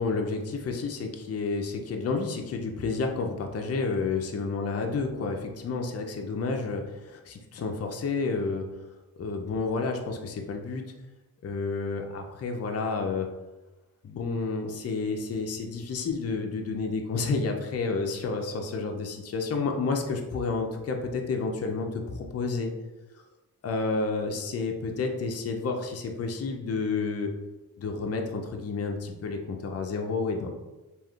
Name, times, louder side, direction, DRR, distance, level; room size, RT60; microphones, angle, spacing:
voice 1, 0.0-8.7 9.2-10.8 11.4-13.3 14.0-22.7 23.6-27.3 27.8-30.5, left 4 dB, 45° left, 3 dB, 0.4 m, -30 dB
3.5 x 2.4 x 2.3 m, 1.1 s
cardioid pair, 75°, 36 cm